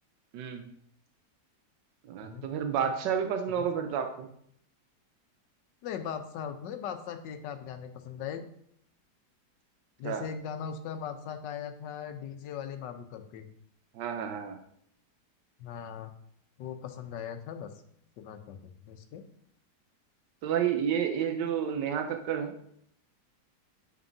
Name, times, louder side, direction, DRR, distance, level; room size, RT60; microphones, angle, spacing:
voice 1, 0.3-0.6 2.0-4.3 10.0-10.2 13.9-14.6 20.4-22.5, right 8 dB, 90° right, 6 dB, 1.3 m, -30 dB
voice 2, 5.8-8.5 10.0-13.5 15.6-16.1 16.6-17.7 18.2-18.6 18.9-19.2, left 8 dB, 90° left, 8 dB, 1.4 m, -39 dB
9.0 x 6.0 x 2.7 m, 0.69 s
omnidirectional pair, 1.9 m